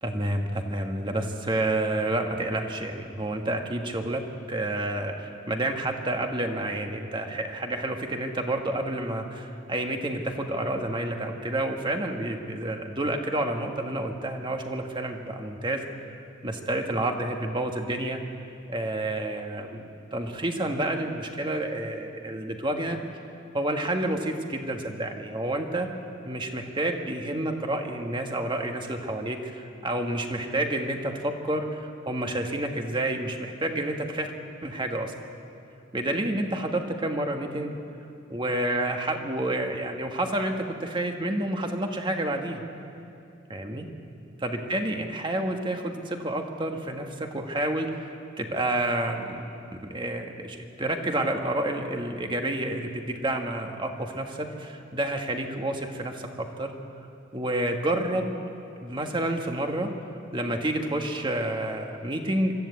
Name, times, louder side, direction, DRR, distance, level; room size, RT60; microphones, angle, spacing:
voice 1, 0.0-15.8 16.4-18.2 18.7-19.8 20.1-23.0 23.5-25.9 26.2-34.3 34.6-35.1 35.9-37.8 38.3-42.6 43.5-43.9 44.4-48.1 48.4-49.4 49.7-56.7 57.3-58.3 58.8-59.9 60.3-62.5, right 1 dB, 25° right, 4 dB, 1.5 m, -29 dB
24.0 x 13.5 x 8.4 m, 2.6 s
head